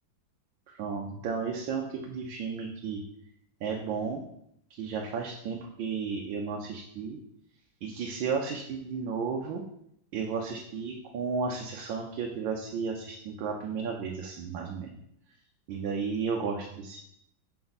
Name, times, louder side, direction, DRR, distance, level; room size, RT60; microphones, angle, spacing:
voice 1, 0.7-3.0 3.6-4.2 4.7-7.2 7.8-9.6 10.1-14.9 15.7-17.0, right 5 dB, 85° right, 0 dB, 1.5 m, -33 dB
5.8 x 4.3 x 4.0 m, 0.74 s
omnidirectional pair, 2.1 m